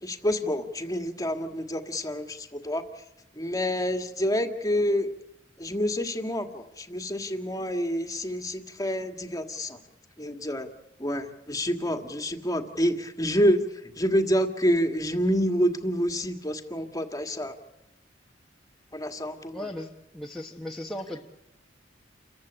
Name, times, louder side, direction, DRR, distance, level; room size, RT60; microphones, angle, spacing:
voice 1, 0.0-2.9 3.3-5.1 5.6-9.8 10.2-10.7 11.0-17.6 18.9-19.7, equal, 20° left, 6 dB, 1.9 m, -28 dB
voice 2, 19.5-21.3, left 1 dB, ahead, -2 dB, 1.2 m, -37 dB
29.0 x 15.0 x 8.8 m, 0.91 s
head